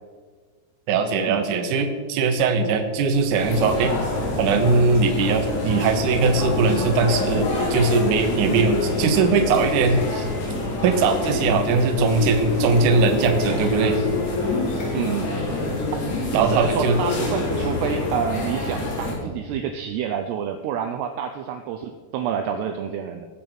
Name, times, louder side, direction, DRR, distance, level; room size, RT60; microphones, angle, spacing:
voice 1, 0.9-3.9 4.4-10.3 10.8-14.0 16.3-17.0, right 4 dB, 65° right, 5 dB, 2.0 m, -20 dB
sound 1, 3.1-10.7, left 1 dB, 55° left, 3.1 m, -43 dB
sound 2, 3.4-19.1, left 2 dB, 75° left, 5.9 m, -26 dB
voice 2, 14.9-15.4 16.4-23.3, right 8 dB, 85° right, 6 dB, 2.4 m, -28 dB
19.0 x 7.0 x 6.1 m, 1.5 s
omnidirectional pair, 5.5 m